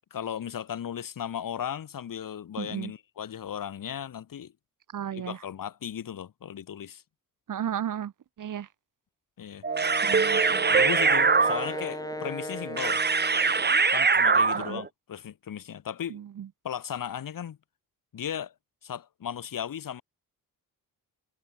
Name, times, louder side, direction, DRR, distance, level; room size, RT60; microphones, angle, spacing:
voice 1, 0.1-4.5 5.1-7.0 9.4-9.7 10.7-13.0 13.9-16.2 16.6-17.6 18.1-18.5 18.8-20.0, left 9 dB, 70° left, 8.0 m, -36 dB
voice 2, 2.6-2.9 4.9-5.4 7.5-8.1 8.4-8.7 10.0-10.7 14.5-14.8 16.1-16.5, right 9 dB, 65° right, 2.3 m, -34 dB
Wind instrument woodwind instrument, 9.6-13.9, left 1 dB, 10° left, 7.0 m, -38 dB
sound 1, 9.6-14.9, right 5 dB, 30° right, 2.7 m, -23 dB
wide cardioid pair, 140°, 34 cm